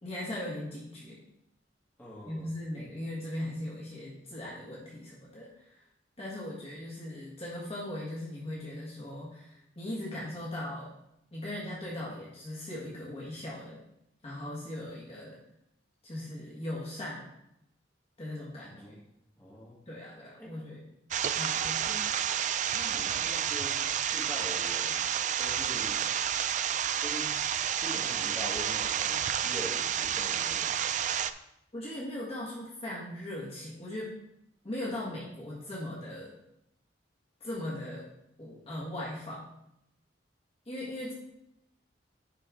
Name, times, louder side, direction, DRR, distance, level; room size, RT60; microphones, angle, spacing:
voice 1, 0.0-1.2 2.3-5.8 6.2-10.9 11.3-13.8 14.2-15.4 16.0-17.3 18.2-19.0 19.9-20.8 21.4-21.9 31.7-34.1 34.6-36.3 37.4-38.1 38.4-39.4 40.7-41.1, left 1 dB, 35° left, -5 dB, 1.6 m, -39 dB
voice 2, 2.0-2.5 18.6-18.9 19.4-19.7 20.4-20.5 21.8-22.0 22.7-25.1 25.4-26.1 27.0-27.3 27.8-31.0, equal, 10° left, -6 dB, 2.1 m, -43 dB
sound 1, 21.1-31.3, right 9 dB, 45° right, 0.3 m, -30 dB
10.0 x 4.4 x 3.7 m, 0.81 s
head